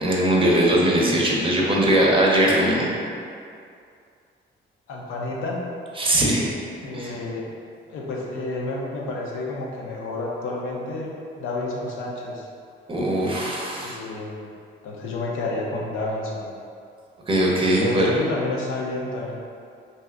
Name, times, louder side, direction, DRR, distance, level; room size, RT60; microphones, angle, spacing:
voice 1, 0.0-2.9 6.0-6.5 6.9-7.1 12.9-14.0 17.3-18.1, right 1 dB, 25° right, -3 dB, 0.6 m, -20 dB
voice 2, 4.9-5.6 6.8-7.5 7.9-12.5 13.8-14.5 14.8-16.5 17.8-19.4, left 2 dB, 85° left, -3 dB, 0.6 m, -30 dB
2.7 x 2.3 x 3.5 m, 2.3 s
cardioid pair, 90°, 20 cm